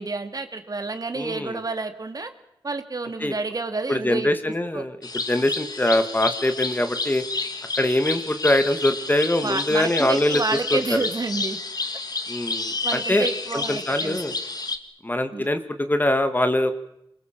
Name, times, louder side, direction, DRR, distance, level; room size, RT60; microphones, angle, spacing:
voice 1, 0.0-2.3 2.6-4.8 9.4-11.6 12.8-14.4 15.3-15.5, right 3 dB, 45° right, 7 dB, 2.6 m, -29 dB
voice 2, 1.2-1.6 3.2-3.3 3.9-5.0 5.3-7.2 7.8-10.4 10.7-11.0 12.3-13.3 13.5-14.3 15.0-16.7, left 1 dB, 20° left, 9 dB, 2.2 m, -23 dB
sound 1, 5.0-14.8, left 3 dB, 50° left, 2.2 m, -30 dB
27.5 x 22.0 x 7.6 m, 0.79 s
wide cardioid pair, 70°, 9 cm